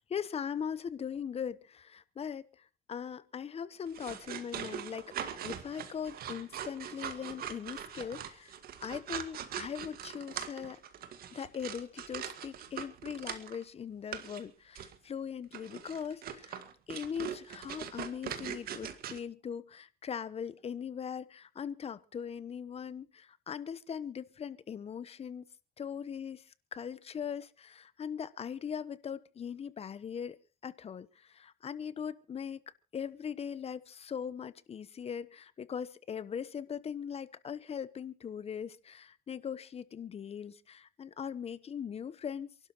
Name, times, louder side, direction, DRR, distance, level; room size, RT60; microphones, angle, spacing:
voice 1, 0.1-2.5 2.9-8.5 8.8-10.8 11.3-16.6 16.9-25.4 25.8-26.4 26.7-32.6 32.9-42.5, left 7 dB, 35° left, 1.0 m, -40 dB
sound 1, 3.9-13.6 14.1-14.4 14.8-15.0 15.5-19.2, right 9 dB, 60° right, 1.9 m, -42 dB
28.0 x 12.0 x 3.0 m
cardioid pair, 110°, 17 cm